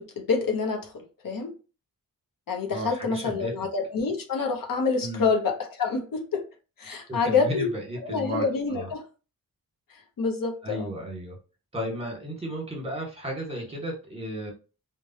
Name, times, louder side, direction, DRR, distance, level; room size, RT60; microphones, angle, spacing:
voice 1, 0.0-1.5 2.5-6.4 6.8-7.7 8.0-9.0 9.9-10.9, left 4 dB, 70° left, 0.7 m, -27 dB
voice 2, 2.7-3.5 5.0-5.3 7.1-8.9 10.6-11.4 11.7-14.5, equal, 15° right, 1.3 m, -34 dB
3.1 x 2.2 x 2.6 m
wide cardioid pair, 95°, 34 cm